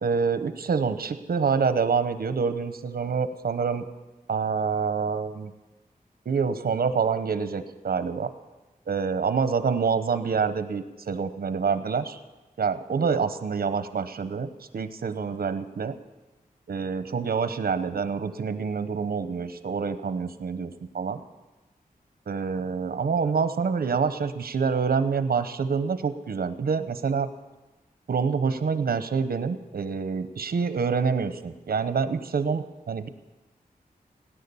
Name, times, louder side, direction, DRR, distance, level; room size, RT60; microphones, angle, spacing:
voice 1, 0.0-3.8 4.3-5.5 6.2-8.3 8.9-12.2 12.6-14.5 14.7-15.9 16.7-21.2 22.3-27.3 28.1-33.1, right 5 dB, 80° right, 10 dB, 0.9 m, -26 dB
17.5 x 10.0 x 7.0 m, 1.1 s
wide cardioid pair, 110°, 15 cm